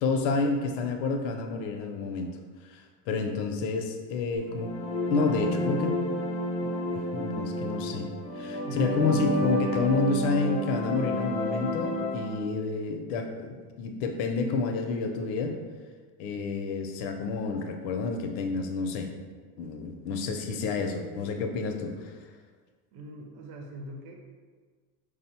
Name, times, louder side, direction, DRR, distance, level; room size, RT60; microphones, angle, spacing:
voice 1, 0.0-2.4 2.7-4.7 5.1-6.0 6.6-8.1 8.4-15.6 16.2-19.1 19.6-22.1, left 4 dB, 85° left, 4 dB, 0.7 m, -29 dB
sound 1, 4.4-12.3, equal, 15° left, 0.4 m, -30 dB
voice 2, 8.6-9.0 22.9-24.1, right 1 dB, 50° right, 1 dB, 0.8 m, -39 dB
5.0 x 2.0 x 4.2 m, 1.5 s
supercardioid pair, 125°, 49 cm